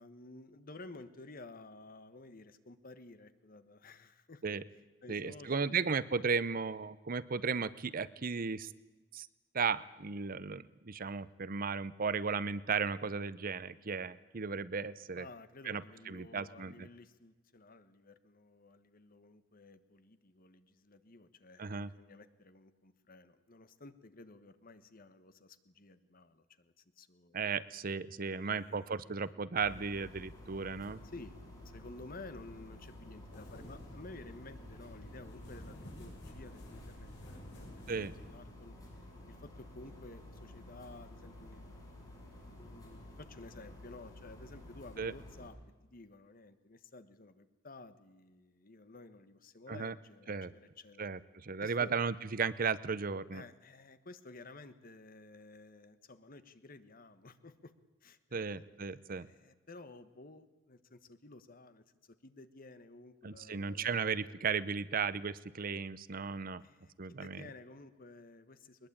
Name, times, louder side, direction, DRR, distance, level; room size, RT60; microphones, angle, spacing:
voice 1, 0.0-4.4 5.0-5.8 15.2-27.4 28.3-29.3 31.1-31.4 31.6-38.8 39.3-41.6 42.4-45.6 45.8-51.1 51.6-51.9 53.3-57.7 58.0-64.0 66.6-68.9, left 2 dB, 50° left, 11 dB, 1.4 m, -53 dB
voice 2, 5.1-8.7 9.1-9.3 9.5-15.3 15.6-16.9 21.6-21.9 27.3-31.0 37.9-38.1 45.0-45.1 49.7-49.9 50.3-50.5 51.0-53.4 58.3-59.3 63.2-66.6 67.0-67.5, right 5 dB, 50° right, 17 dB, 0.7 m, -35 dB
sound 1, 29.6-45.5, left 1 dB, 20° left, 6.6 m, -52 dB
sound 2, 33.3-38.4, equal, 65° left, 7.3 m, -52 dB
21.0 x 20.5 x 8.8 m, 1.1 s
head